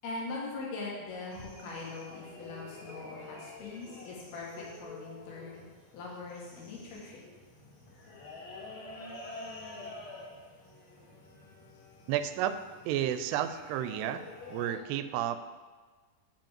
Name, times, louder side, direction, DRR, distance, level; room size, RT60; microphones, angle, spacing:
voice 1, 0.0-5.6 5.9-7.2, left 3 dB, 70° left, -4 dB, 3.7 m, -41 dB
sound 1, 1.3-14.8, left 2 dB, 50° left, 2.3 m, -48 dB
voice 2, 12.1-12.6 12.9-14.2 14.5-15.4, right 11 dB, 90° right, 11 dB, 2.6 m, -31 dB
7.3 x 5.2 x 7.4 m, 1.4 s
omnidirectional pair, 4.7 m